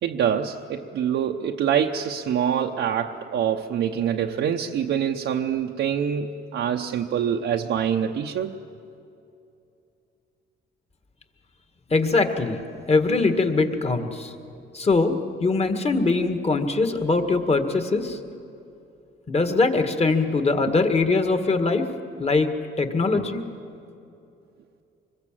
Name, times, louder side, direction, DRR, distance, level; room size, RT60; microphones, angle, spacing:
voice 1, 0.0-8.6, right 8 dB, 75° right, 1 dB, 0.9 m, -25 dB
voice 2, 11.9-12.6 12.9-14.3 14.7-18.2 19.3-21.8 22.2-23.4, left 3 dB, 30° left, 6 dB, 2.0 m, -22 dB
25.0 x 21.5 x 7.6 m, 2.7 s
cardioid pair, 90°, 20 cm